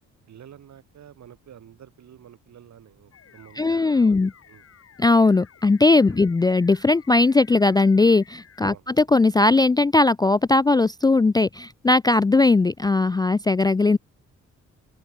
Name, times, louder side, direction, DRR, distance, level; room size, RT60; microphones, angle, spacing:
voice 1, 0.3-4.2 4.5-4.6 6.0-6.2 8.6-8.9, right 9 dB, 65° right, 6.0 m, -49 dB
sound 1, 3.1-8.7, left 8 dB, 55° left, 2.9 m, -53 dB
voice 2, 3.6-4.3 5.0-14.0, left 3 dB, 15° left, 0.3 m, -19 dB
open air
cardioid pair, 105°, 29 cm